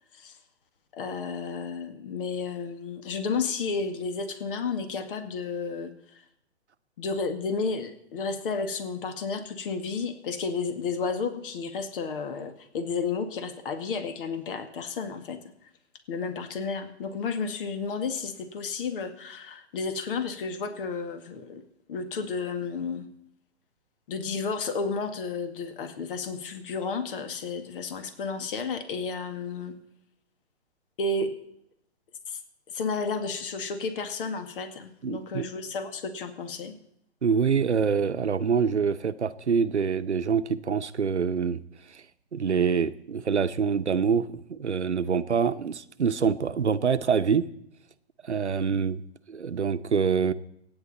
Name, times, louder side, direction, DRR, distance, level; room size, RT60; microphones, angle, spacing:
voice 1, 0.9-6.2 7.0-15.4 16.1-21.6 21.9-23.1 24.1-29.7 31.0-31.3 32.3-32.4 32.7-36.8, left 4 dB, 50° left, 8 dB, 2.1 m, -32 dB
voice 2, 35.0-35.5 37.2-41.6 41.9-42.0 42.3-47.5 48.2-49.0 49.3-50.3, right 6 dB, 90° right, 12 dB, 0.9 m, -25 dB
24.5 x 9.8 x 4.2 m, 0.73 s
hypercardioid pair, 130°, 33 cm